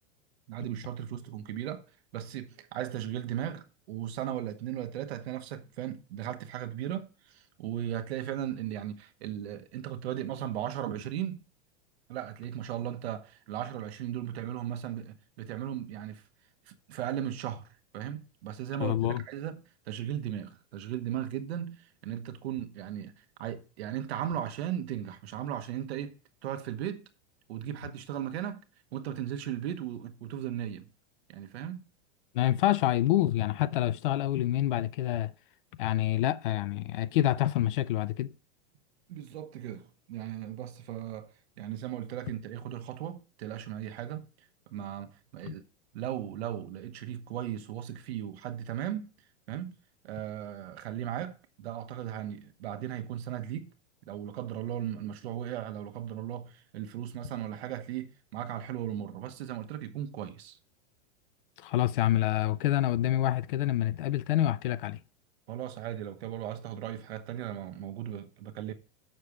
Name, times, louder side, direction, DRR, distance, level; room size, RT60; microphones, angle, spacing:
voice 1, 0.5-1.8 2.1-11.4 12.1-16.2 16.7-17.7 17.9-27.1 27.5-28.6 28.9-30.9 31.3-31.9 39.1-41.3 41.6-44.3 44.7-45.6 45.9-49.1 49.5-49.8 50.0-53.7 54.1-60.6 65.5-68.7, right 11 dB, 65° right, 1.2 m, -37 dB
voice 2, 18.8-19.2 32.3-35.3 35.8-38.3 45.4-45.5 61.6-65.0, left 13 dB, 50° left, 0.5 m, -27 dB
6.9 x 6.6 x 4.8 m
supercardioid pair, 170°, 35 cm